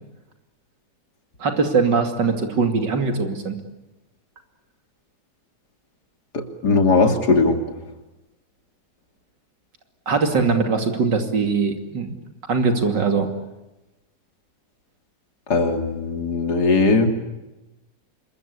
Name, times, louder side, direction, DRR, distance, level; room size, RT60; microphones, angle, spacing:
voice 1, 1.4-3.6 10.1-12.1 12.5-13.3, right 4 dB, 85° right, 6 dB, 3.2 m, -21 dB
voice 2, 6.3-7.6 15.5-17.1, left 3 dB, 65° left, 6 dB, 3.3 m, -19 dB
26.5 x 22.5 x 8.4 m, 1.0 s
omnidirectional pair, 1.9 m